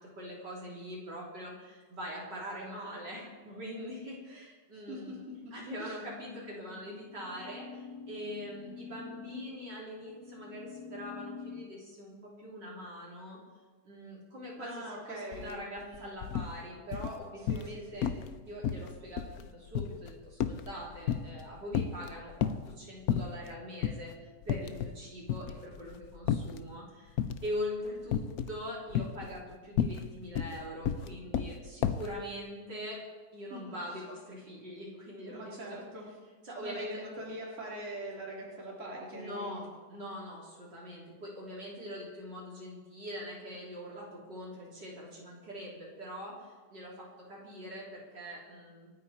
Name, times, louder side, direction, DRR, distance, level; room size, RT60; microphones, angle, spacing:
voice 1, 0.0-5.2 5.5-13.4 13.8-18.1 18.5-27.2 27.4-33.0 33.3-35.8 36.4-37.1 39.1-48.9, equal, 50° right, -4 dB, 4.0 m, -43 dB
voice 2, 4.7-6.0 14.6-15.5 15.8-16.2 17.5-18.3 33.5-33.8 35.3-36.1 36.6-39.6, right 1 dB, 35° right, -4 dB, 3.5 m, -43 dB
sound 1, 6.1-11.7, left 5 dB, 55° left, 1.3 m, -47 dB
sound 2, 15.3-15.5 15.8-16.5 16.9-17.8 18.0-18.4 18.6-21.4 21.7-22.7 23.1-23.5 23.8-24.0 24.4-25.0 25.3-26.6 27.2-27.6 28.1-28.6 28.9-32.1, left 9 dB, 75° left, 0.8 m, -32 dB
27.5 x 9.4 x 4.3 m, 1.4 s
omnidirectional pair, 2.4 m